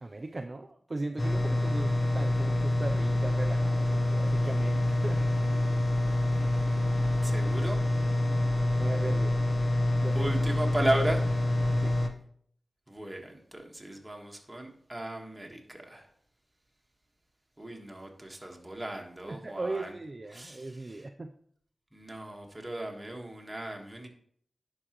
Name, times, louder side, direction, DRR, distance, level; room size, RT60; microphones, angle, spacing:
voice 1, 0.0-5.3 8.7-9.3 9.8-10.3 11.8-11.9 19.3-21.3, right 2 dB, 35° right, 6 dB, 0.4 m, -38 dB
sound 1, 1.2-12.1, left 1 dB, 45° left, 1.0 m, -27 dB
voice 2, 7.2-7.8 10.1-11.3 12.9-16.1 17.6-19.9 20.3-21.1 21.9-24.1, right 1 dB, 15° right, 1 dB, 1.5 m, -35 dB
11.0 x 4.9 x 3.0 m, 0.62 s
wide cardioid pair, 70°, 0 cm